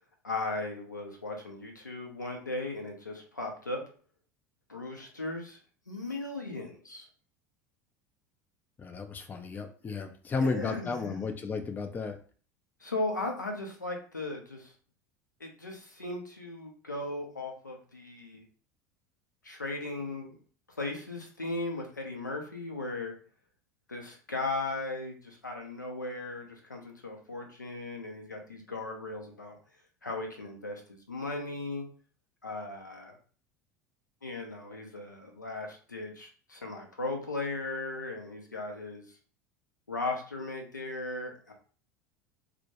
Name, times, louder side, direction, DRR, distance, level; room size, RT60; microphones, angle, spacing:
voice 1, 0.2-3.8 4.7-5.6 5.9-7.1 10.4-11.2 12.8-14.7 15.4-18.4 19.4-20.3 20.7-23.2 23.9-29.6 30.0-31.9 32.4-33.2 34.2-39.2 39.9-41.5, left 2 dB, 90° left, 2 dB, 0.5 m, -37 dB
voice 2, 8.8-12.2, left 4 dB, 20° left, 7 dB, 0.4 m, -33 dB
2.1 x 2.1 x 2.9 m, 0.41 s
figure-of-eight pair, 75°, 10 cm